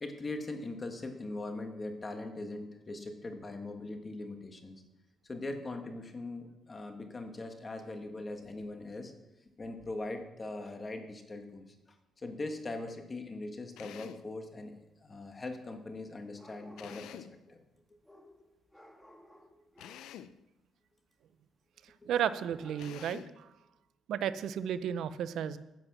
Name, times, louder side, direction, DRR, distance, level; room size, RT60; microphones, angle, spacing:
voice 1, 0.0-4.8 5.3-9.1 9.6-11.7 12.2-17.6 22.0-22.1, left 2 dB, 30° left, 5 dB, 1.6 m, -41 dB
Drill, 13.8-14.3 16.8-17.4 19.8-20.4 22.8-23.4, left 10 dB, 85° left, 0.5 m, -48 dB
sound 1, 14.1-14.2 16.3-17.3 18.0-20.1 22.2-23.1, left 1 dB, 5° left, 1.6 m, -57 dB
voice 2, 22.1-23.2 24.1-25.6, right 9 dB, 75° right, 14 dB, 0.6 m, -33 dB
10.5 x 7.3 x 6.0 m, 0.98 s
cardioid pair, 90°, 0 cm